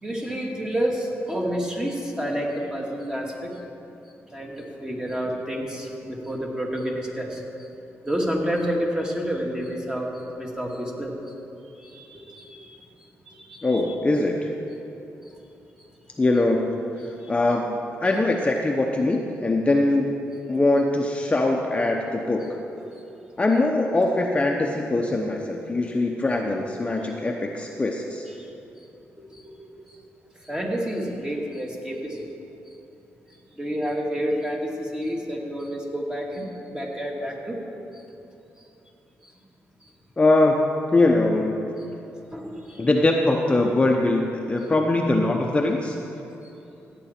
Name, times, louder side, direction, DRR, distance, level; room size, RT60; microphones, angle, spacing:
voice 1, 0.0-3.6 4.3-7.7 8.0-11.3 11.6-12.8 13.3-13.9 14.8-14.9 15.2-15.4 15.8-15.9 17.0-17.3 22.8-23.0 28.4-28.9 29.2-30.0 30.3-32.3 32.7-32.8 33.3-37.6 37.9-38.0 38.6-38.7 39.2-39.3 39.8-39.9 42.3-42.9 46.4-46.5, equal, 15° right, -1 dB, 2.1 m, -30 dB
voice 2, 13.6-14.5 16.2-20.2 20.5-22.6 23.4-28.3 40.2-41.5 42.8-46.0, left 2 dB, 25° left, 1 dB, 0.8 m, -22 dB
15.0 x 9.2 x 4.4 m, 2.9 s
cardioid pair, 85°, 5 cm